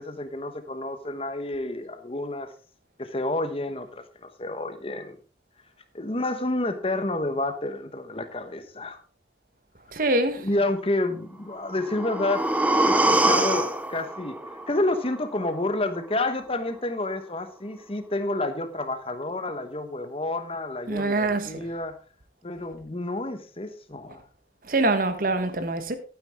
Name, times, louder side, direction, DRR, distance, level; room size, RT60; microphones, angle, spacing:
voice 1, 0.0-2.5 3.0-5.2 5.9-9.0 10.4-14.4 14.7-22.0 22.4-24.2, left 2 dB, 30° left, 1.1 m, -29 dB
voice 2, 9.9-10.4 20.9-21.6 24.7-25.9, right 2 dB, 50° right, 1.2 m, -24 dB
sound 1, 11.6-15.6 16.0-16.1, right 1 dB, 10° right, 0.8 m, -25 dB
11.5 x 9.5 x 3.6 m
head